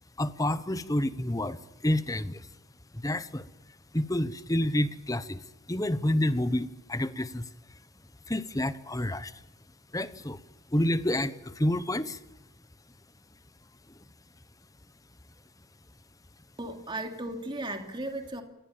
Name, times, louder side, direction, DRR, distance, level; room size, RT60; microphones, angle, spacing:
voice 1, 0.2-2.5 2.9-3.5 3.9-7.5 8.3-9.4 9.9-10.4 10.7-12.2, left 1 dB, 15° left, 13 dB, 1.0 m, -29 dB
voice 2, 16.6-18.4, right 1 dB, 20° right, 5 dB, 2.8 m, -36 dB
27.5 x 19.5 x 7.3 m, 0.96 s
head